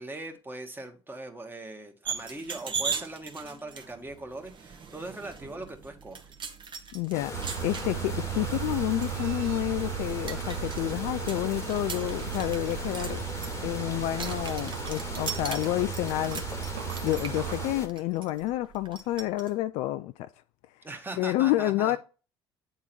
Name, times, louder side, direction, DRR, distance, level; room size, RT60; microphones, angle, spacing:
voice 1, 0.0-6.2 20.8-22.0, right 2 dB, 15° right, 1.6 m, -40 dB
sound 1, 2.0-19.5, right 6 dB, 35° right, 1.2 m, -40 dB
voice 2, 6.9-7.3 7.6-13.2 13.6-16.4 17.0-20.3 21.2-22.0, left 16 dB, 55° left, 0.4 m, -29 dB
sound 2, 7.1-17.9, left 2 dB, 20° left, 1.3 m, -39 dB
sound 3, 7.3-17.8, right 10 dB, 70° right, 0.7 m, -36 dB
8.8 x 3.7 x 4.5 m
figure-of-eight pair, 55°, 13 cm